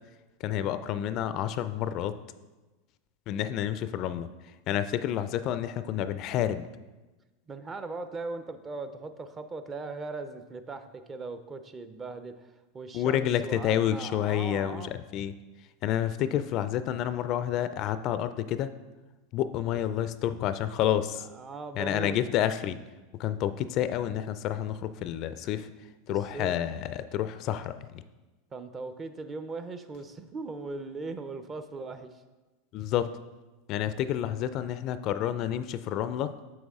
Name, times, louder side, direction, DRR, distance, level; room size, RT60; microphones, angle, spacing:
voice 1, 0.4-2.2 3.3-4.3 4.7-6.6 12.9-15.3 15.8-18.7 19.3-21.3 21.8-22.8 23.2-25.7 26.1-28.0 32.7-33.1 33.7-36.3, left 11 dB, 50° left, 12 dB, 0.4 m, -29 dB
voice 2, 7.5-12.3 12.7-14.9 21.3-22.2 26.3-26.6 28.5-32.1, right 3 dB, 25° right, 9 dB, 0.6 m, -39 dB
7.0 x 6.3 x 3.6 m, 1.2 s
hypercardioid pair, 100°, 0 cm